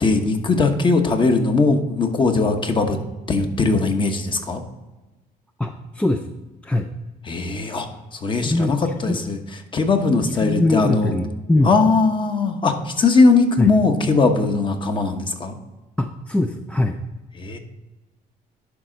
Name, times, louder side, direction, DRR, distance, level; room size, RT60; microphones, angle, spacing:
voice 1, 0.0-3.0 3.3-4.6 7.2-9.4 9.7-11.1 11.6-15.5 17.4-17.6, left 3 dB, 30° left, 6 dB, 1.0 m, -19 dB
voice 2, 5.6-6.3 6.6-6.9 8.4-9.2 10.4-11.7 13.6-13.7 16.0-17.0, left 2 dB, 5° left, 5 dB, 0.4 m, -22 dB
11.0 x 4.2 x 3.9 m, 1.1 s
cardioid pair, 110°, 17 cm